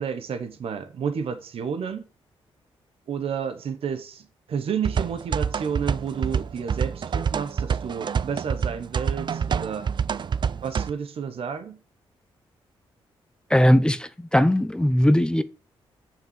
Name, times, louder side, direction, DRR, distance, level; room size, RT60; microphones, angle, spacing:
voice 1, 0.0-2.0 3.1-9.9 10.6-11.8, right 7 dB, 70° right, 1.1 m, -31 dB
sound 1, 4.8-10.9, right 7 dB, 50° right, 0.5 m, -27 dB
voice 2, 13.5-15.4, equal, 10° left, 0.8 m, -19 dB
6.8 x 5.9 x 7.4 m
cardioid pair, 65°, 10 cm